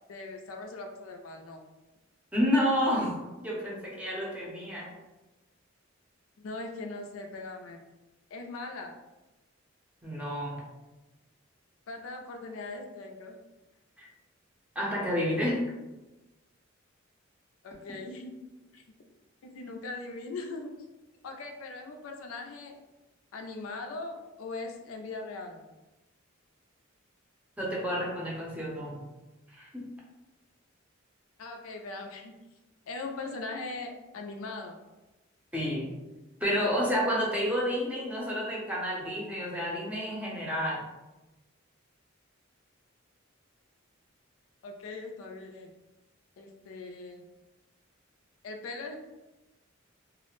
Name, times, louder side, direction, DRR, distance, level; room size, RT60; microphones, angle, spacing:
voice 1, 0.1-1.6 6.4-7.8 8.3-8.9 11.9-13.4 17.6-18.4 18.7-18.8 19.4-20.7 21.2-22.8 23.3-25.7 31.4-32.3 32.9-34.8 44.6-45.7 46.4-47.2 48.4-49.0, left 3 dB, 85° left, 3 dB, 0.4 m, -40 dB
voice 2, 2.3-4.9 10.0-10.6 14.0-14.1 14.8-15.6 27.6-29.0 29.5-29.8 35.5-35.9 36.4-40.8, equal, 5° right, -4 dB, 0.6 m, -30 dB
2.3 x 2.0 x 3.0 m, 1.1 s
head